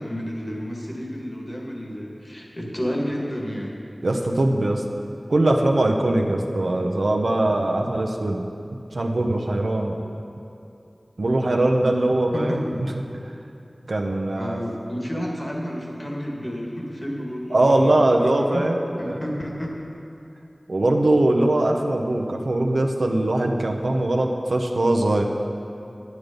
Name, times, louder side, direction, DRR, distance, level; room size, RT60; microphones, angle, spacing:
voice 1, 0.0-3.7 12.3-12.6 14.3-18.7 19.0-19.7, equal, 35° left, -2 dB, 1.8 m, -31 dB
voice 2, 4.0-4.8 5.3-8.5 8.9-10.0 11.2-12.9 13.1-13.2 13.9-14.6 17.5-19.2 20.7-25.2, right 1 dB, 90° right, 1 dB, 0.8 m, -21 dB
10.0 x 9.5 x 5.3 m, 2.7 s
wide cardioid pair, 50°, 0 cm